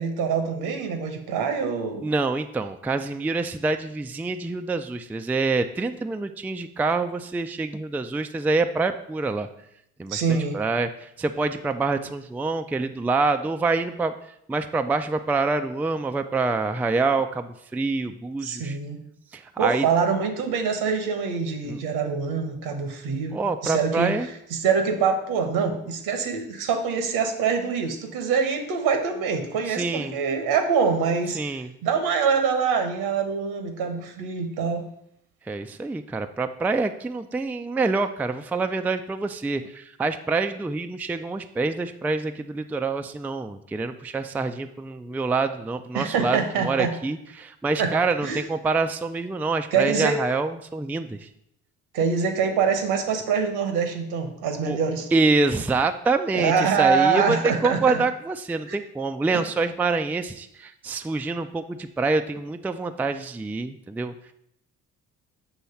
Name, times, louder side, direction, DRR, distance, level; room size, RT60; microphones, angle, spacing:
voice 1, 0.0-2.1 10.1-10.6 18.4-19.0 19.6-24.2 24.5-31.4 31.8-34.9 45.9-46.9 47.8-47.9 48.2-48.4 49.7-50.2 51.9-55.1 56.3-58.0 58.7-58.8, right 6 dB, 75° right, 6 dB, 1.2 m, -24 dB
voice 2, 2.0-9.5 10.0-14.1 14.5-18.8 19.3-19.9 21.7-21.8 23.3-24.3 29.7-30.2 31.3-31.7 35.5-51.3 54.7-54.8 55.1-64.1, right 3 dB, 5° right, 7 dB, 0.3 m, -26 dB
7.2 x 3.1 x 5.7 m, 0.75 s
hypercardioid pair, 55°, 38 cm